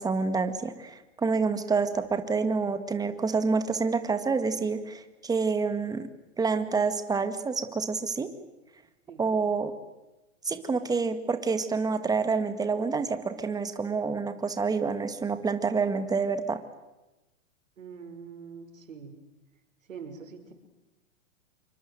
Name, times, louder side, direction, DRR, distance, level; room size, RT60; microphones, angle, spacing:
voice 1, 0.0-6.1 6.4-8.3 9.2-9.7 10.4-16.6, right 4 dB, 10° right, 9 dB, 2.1 m, -28 dB
voice 2, 17.8-19.1 19.9-20.5, right 6 dB, 85° right, 5 dB, 5.9 m, -43 dB
27.5 x 24.0 x 8.0 m, 1.0 s
hypercardioid pair, 130°, 38 cm